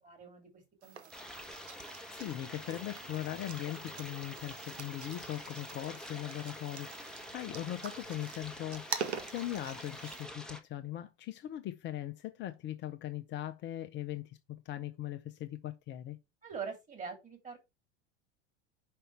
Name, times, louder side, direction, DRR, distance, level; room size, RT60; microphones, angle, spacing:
voice 1, 0.0-0.5 0.8-1.5 16.4-17.6, right 6 dB, 25° right, 3.1 m, -44 dB
sound 1, 0.8-10.2, right 7 dB, 75° right, 0.9 m, -45 dB
sound 2, 1.1-10.6, left 1 dB, ahead, 1.2 m, -47 dB
voice 2, 1.7-14.4 14.6-16.2, left 13 dB, 35° left, 0.7 m, -40 dB
5.6 x 5.2 x 4.5 m
figure-of-eight pair, 75°, 33 cm